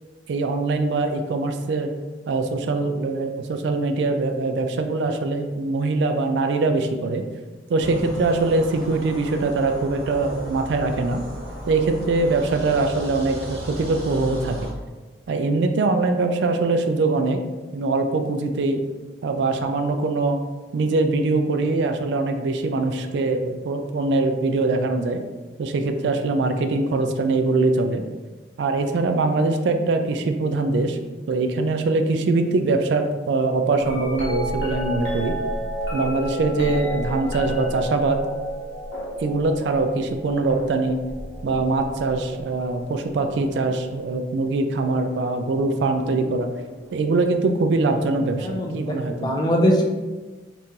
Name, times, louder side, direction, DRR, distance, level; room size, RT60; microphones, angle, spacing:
voice 1, 0.3-1.9 2.3-7.2 7.7-11.2 11.7-14.7 15.3-17.4 17.7-18.8 19.2-20.4 20.7-25.2 25.6-28.0 28.6-31.0 31.3-35.4 35.9-38.2 39.2-41.0 41.4-46.5 46.9-49.4, right 3 dB, 70° right, 7 dB, 0.3 m, -22 dB
sound 1, 7.8-14.7, equal, 85° right, 0.9 m, -36 dB
sound 2, 33.8-43.9 44.8-45.3 46.0-47.0 48.8-48.9, equal, 70° left, 0.9 m, -31 dB
voice 2, 48.4-49.9, equal, 25° left, 1 dB, 0.4 m, -22 dB
3.6 x 2.5 x 2.8 m, 1.3 s
head